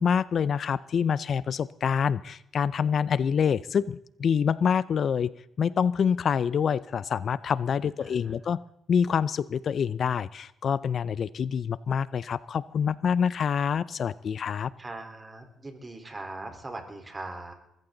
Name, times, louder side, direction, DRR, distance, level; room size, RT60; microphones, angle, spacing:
voice 1, 0.0-5.3 5.6-8.6 8.9-14.7, left 7 dB, 55° left, 18 dB, 0.5 m, -26 dB
voice 2, 8.0-8.3 14.8-17.5, right 2 dB, 25° right, 4 dB, 4.0 m, -40 dB
21.5 x 14.5 x 3.9 m, 0.79 s
cardioid pair, 90°, 0 cm